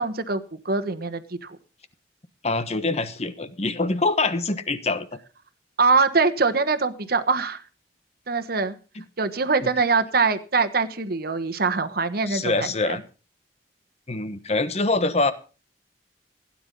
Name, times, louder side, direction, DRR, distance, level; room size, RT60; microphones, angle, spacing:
voice 1, 0.0-1.6 5.8-7.6 8.3-8.7 9.2-13.0, right 4 dB, 55° right, 11 dB, 1.3 m, -23 dB
voice 2, 2.4-5.1 9.6-9.7 12.3-13.0 14.1-15.3, left 3 dB, 35° left, 12 dB, 1.2 m, -24 dB
16.0 x 10.0 x 5.3 m, 0.36 s
head